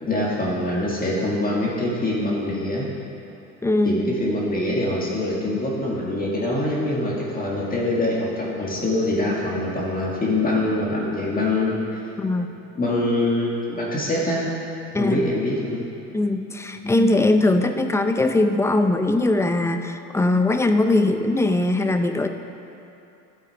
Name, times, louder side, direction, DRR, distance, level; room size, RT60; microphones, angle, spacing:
voice 1, 0.0-2.9 3.8-11.8 12.8-14.5 15.0-15.9, left 1 dB, 25° left, -4 dB, 1.8 m, -24 dB
voice 2, 3.6-4.0 12.2-12.5 14.9-15.3 16.1-22.3, left 2 dB, 10° left, 7 dB, 0.4 m, -20 dB
12.0 x 7.9 x 4.8 m, 2.8 s
cardioid pair, 120°, 36 cm